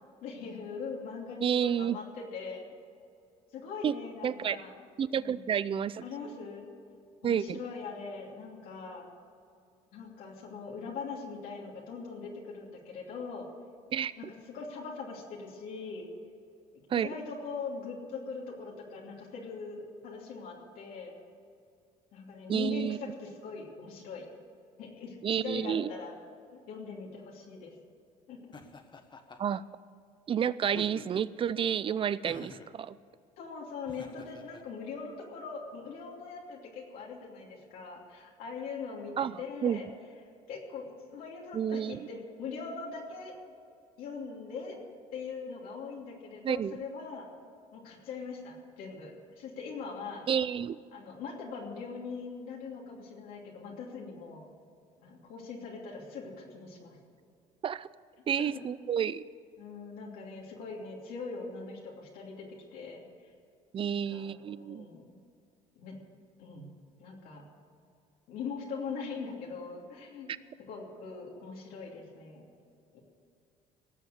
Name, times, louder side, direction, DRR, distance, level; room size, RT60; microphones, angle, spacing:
voice 1, 0.2-2.6 3.5-4.7 5.2-5.4 6.0-6.7 7.2-9.1 9.9-13.5 14.2-14.3 14.5-16.1 16.9-21.1 22.1-24.3 24.8-26.1 26.5-27.7 28.3-28.4 33.4-39.9 40.5-43.3 44.0-44.8 45.1-47.3 47.7-50.3 50.9-54.5 55.0-57.0 58.4-58.5 59.6-62.4 62.7-63.3 63.9-65.2 65.8-66.0 66.4-66.7 67.0-67.5 68.3-70.3 70.7-72.5 72.9-73.0, left 5 dB, 75° left, -2 dB, 2.9 m, -41 dB
voice 2, 1.4-2.0 3.8-3.9 4.2-4.6 5.0-6.3 7.2-7.6 13.9-14.1 16.9-17.1 22.5-23.0 25.2-25.9 29.4-29.6 30.3-33.0 39.2-39.8 41.5-42.1 46.4-46.8 50.3-50.8 57.6-57.9 58.3-59.2 63.7-64.9 70.3-70.4, right 8 dB, 35° right, 18 dB, 0.5 m, -30 dB
Laughter, 28.5-29.6 30.6-31.4 32.2-32.8 33.9-34.6, left 4 dB, 30° left, 1.2 m, -48 dB
18.0 x 7.1 x 8.1 m, 2.5 s
cardioid pair, 95°, 15 cm